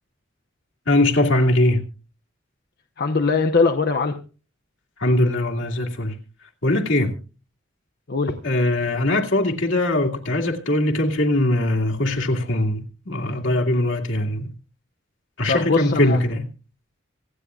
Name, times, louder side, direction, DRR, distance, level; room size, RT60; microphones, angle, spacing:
voice 1, 0.9-1.8 5.0-6.1 6.6-7.2 8.4-14.5 15.4-16.5, left 1 dB, 75° left, 2.3 m, -21 dB
voice 2, 3.0-4.2 8.1-8.3 15.5-16.2, left 4 dB, 55° left, 0.9 m, -21 dB
25.5 x 9.4 x 2.4 m
head